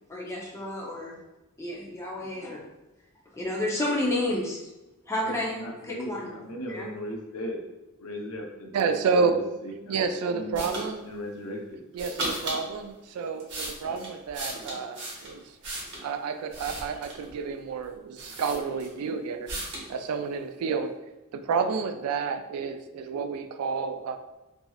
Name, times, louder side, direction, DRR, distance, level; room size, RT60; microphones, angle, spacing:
voice 1, 0.1-1.1 1.6-2.6 3.3-4.7 5.1-6.3 6.7-6.9, left 1 dB, 15° left, -4 dB, 0.6 m, -30 dB
voice 2, 5.2-7.6 8.0-9.3 9.6-9.9 10.3-10.7 11.0-11.8, equal, 85° left, 1 dB, 0.6 m, -37 dB
voice 3, 8.7-9.4 9.9-11.1 11.9-15.4 16.0-19.5 19.9-20.9 21.3-24.2, right 5 dB, 85° right, 12 dB, 0.3 m, -29 dB
sound 1, 10.5-10.9 11.9-12.6 13.2-16.1 16.5-17.3 17.8-17.9 18.2-19.0 19.5-19.9, right 1 dB, 55° right, 0.9 m, -36 dB
3.0 x 2.6 x 2.3 m, 1.0 s
head